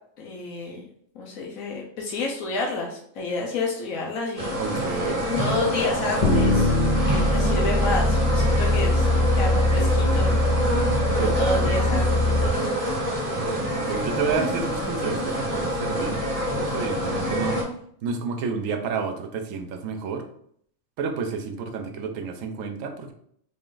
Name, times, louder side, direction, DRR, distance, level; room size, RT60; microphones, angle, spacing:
voice 1, 0.2-0.8 1.1-4.6 5.2-10.3 11.1-12.5, left 2 dB, 85° left, -1 dB, 1.1 m, -30 dB
sound 1, 4.4-17.6, equal, 30° right, 0.9 m, -26 dB
voice 2, 4.5-5.2 11.2-11.7 13.3-16.2 16.6-17.6 18.0-20.3 21.0-23.1, right 5 dB, 80° right, 6 dB, 1.0 m, -30 dB
sound 2, 6.2-12.5, left 1 dB, 40° left, 0.8 m, -22 dB
3.8 x 2.4 x 3.7 m, 0.66 s
omnidirectional pair, 1.4 m